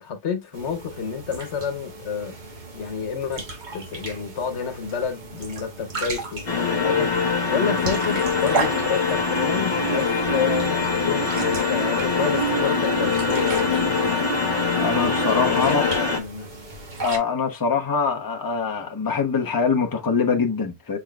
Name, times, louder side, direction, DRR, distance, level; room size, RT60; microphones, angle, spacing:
voice 1, 0.0-2.3 2.7-3.4 3.7-7.1 7.5-14.1 15.4-16.5, left 6 dB, 80° left, 1.2 m, -29 dB
sound 1, 0.5-17.2, right 3 dB, 45° right, 1.2 m, -35 dB
sound 2, 6.5-16.2, left 4 dB, 55° left, 1.4 m, -23 dB
voice 2, 14.8-15.9 17.0-21.0, left 5 dB, 20° left, 0.8 m, -23 dB
6.2 x 3.6 x 2.3 m
omnidirectional pair, 1.1 m